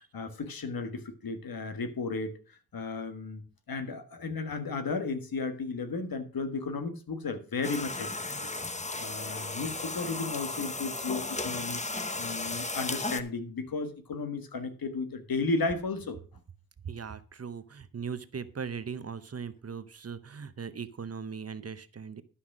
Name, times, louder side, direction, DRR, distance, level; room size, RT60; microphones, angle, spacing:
voice 1, 0.0-3.4 3.7-8.1 8.4-8.5 9.0-11.8 12.2-16.2, left 3 dB, 75° left, 1.6 m, -34 dB
sound 1, 7.6-13.2, left 2 dB, 20° left, 0.8 m, -35 dB
voice 2, 16.8-22.2, right 6 dB, 45° right, 0.8 m, -39 dB
11.5 x 5.7 x 6.0 m
wide cardioid pair, 120°, 35 cm